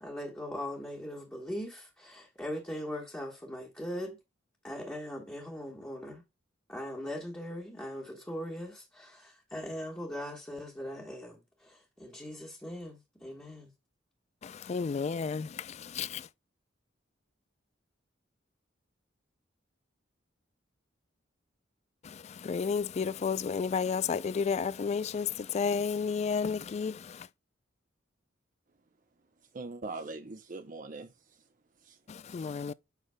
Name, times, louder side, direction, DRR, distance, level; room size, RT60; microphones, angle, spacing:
voice 1, 0.0-4.2 4.6-6.2 6.7-13.7, equal, 10° left, 1.4 m, -40 dB
voice 2, 14.4-16.3 22.0-27.3 32.1-32.7, left 5 dB, 35° left, 0.3 m, -32 dB
voice 3, 29.5-31.4 31.8-32.0, right 3 dB, 45° right, 0.7 m, -42 dB
8.2 x 5.6 x 2.2 m
head